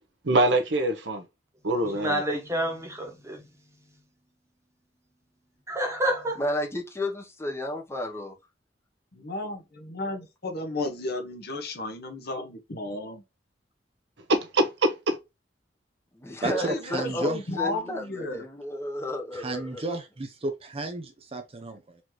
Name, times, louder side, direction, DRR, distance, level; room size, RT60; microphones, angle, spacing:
voice 1, 0.3-1.2 1.6-2.2 14.3-15.2, right 1 dB, 70° right, 0.9 m, -24 dB
voice 2, 1.8-3.5 5.7-6.5, right 1 dB, 15° right, 1.3 m, -29 dB
voice 3, 6.4-8.3 16.1-20.0, left 1 dB, 15° left, 1.0 m, -32 dB
voice 4, 9.1-13.2 16.5-18.4, left 2 dB, 60° left, 1.1 m, -33 dB
voice 5, 16.4-17.4 19.3-22.0, right 2 dB, 35° right, 0.6 m, -32 dB
4.2 x 3.0 x 3.1 m
head